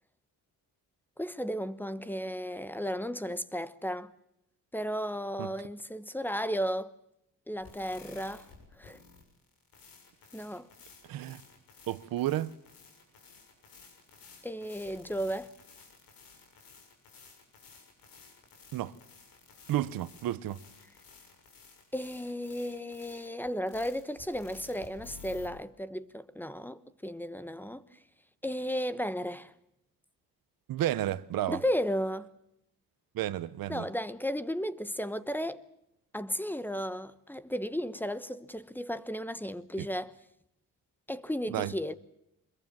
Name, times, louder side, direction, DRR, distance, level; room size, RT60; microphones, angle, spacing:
voice 1, 1.2-4.1 4.7-6.9 7.5-8.5 8.8-9.0 10.3-10.7 14.4-15.5 21.9-27.9 28.4-29.5 31.5-32.3 33.7-35.6 36.1-40.1 41.1-41.9, equal, 5° left, 1.0 m, -34 dB
sound 1, 7.6-25.5, left 5 dB, 80° left, 6.8 m, -54 dB
voice 2, 11.1-11.4 11.9-12.5 18.7-19.0 19.7-20.6 30.7-31.6 33.1-33.8 39.8-39.9 41.5-41.7, right 13 dB, 85° right, 1.0 m, -32 dB
24.5 x 22.0 x 7.4 m
cardioid pair, 125°, 34 cm